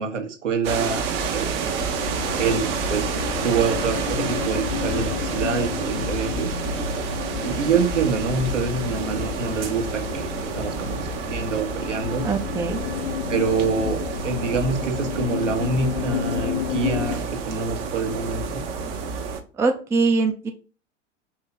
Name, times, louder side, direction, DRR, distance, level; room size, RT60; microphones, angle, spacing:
voice 1, 0.0-1.7 2.4-3.1 3.4-6.6 7.4-12.3 13.3-18.6, right 4 dB, 75° right, 4 dB, 1.2 m, -26 dB
sound 1, 0.6-19.4, right 5 dB, 50° right, 1.0 m, -29 dB
sound 2, 1.8-17.1, left 9 dB, 65° left, 0.6 m, -32 dB
voice 2, 12.2-12.8 19.6-20.5, right 4 dB, 10° right, 5 dB, 0.4 m, -22 dB
4.7 x 3.0 x 3.8 m, 0.37 s
figure-of-eight pair, 90°, 37 cm